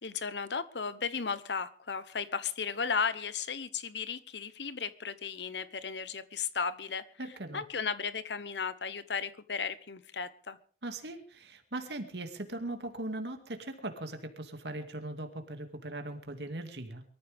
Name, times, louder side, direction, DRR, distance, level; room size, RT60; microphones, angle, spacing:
voice 1, 0.0-10.6, left 6 dB, 80° left, 14 dB, 1.0 m, -35 dB
voice 2, 7.2-7.6 10.8-17.0, right 2 dB, 75° right, 6 dB, 2.3 m, -39 dB
23.5 x 14.0 x 3.6 m, 0.43 s
head